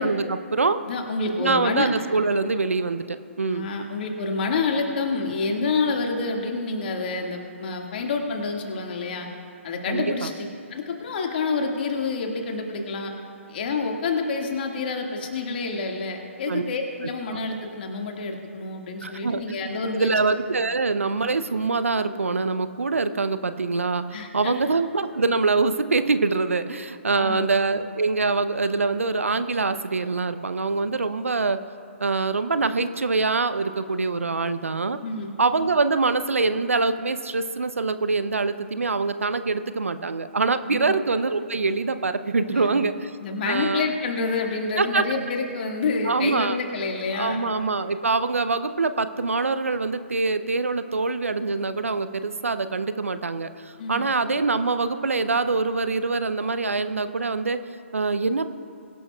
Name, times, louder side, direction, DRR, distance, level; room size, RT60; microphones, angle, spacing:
voice 1, 0.0-0.8 1.4-3.7 9.9-10.3 16.5-16.6 19.0-19.6 19.9-31.6 32.0-35.0 35.4-43.1 43.5-43.9 44.8-45.0 46.0-46.6 47.1-57.6 57.9-58.5, right 3 dB, 80° right, 12 dB, 0.7 m, -24 dB
voice 2, 0.9-1.9 3.4-9.3 9.6-13.1 13.5-20.1 24.1-24.8 27.1-27.5 35.0-35.3 40.7-41.0 42.4-42.9 43.2-47.4 53.8-54.1, left 4 dB, 45° left, 2 dB, 1.9 m, -28 dB
22.5 x 11.5 x 2.3 m, 2.6 s
figure-of-eight pair, 130°, 7 cm